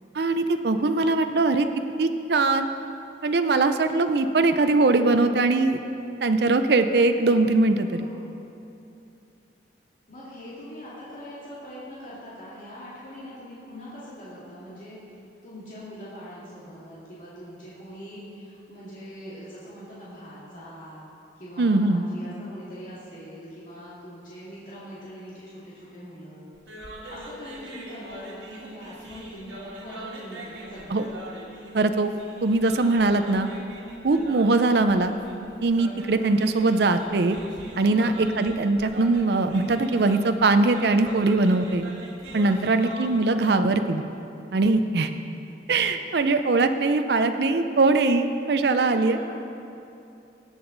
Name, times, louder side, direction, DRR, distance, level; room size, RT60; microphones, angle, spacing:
voice 1, 0.1-1.7 2.0-2.7 3.2-5.8 6.2-8.0 21.6-22.0 30.9-31.0 31.7-32.1 32.4-33.5 34.0-35.1 35.6-37.4 37.8-41.8 42.3-44.0 44.5-45.1 45.7-49.2, right 3 dB, 60° right, 8 dB, 0.5 m, -21 dB
voice 2, 7.9-8.3 10.1-15.0 15.4-21.1 21.4-26.5 27.1-31.2 37.9-38.2 42.4-42.8 49.0-49.3, equal, 45° left, -9 dB, 2.2 m, -42 dB
sound 1, 26.6-43.5, right 1 dB, 85° right, 1.9 m, -42 dB
18.0 x 7.9 x 3.9 m, 2.7 s
head